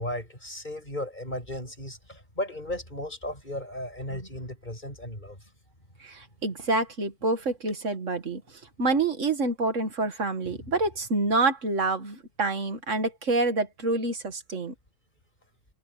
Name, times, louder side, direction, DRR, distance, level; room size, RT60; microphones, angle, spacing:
voice 1, 0.0-5.5 10.4-10.7, left 1 dB, 15° left, 8.0 m, -35 dB
voice 2, 6.0-8.4 8.8-14.7, right 3 dB, 30° right, 1.5 m, -27 dB
omnidirectional pair, 3.6 m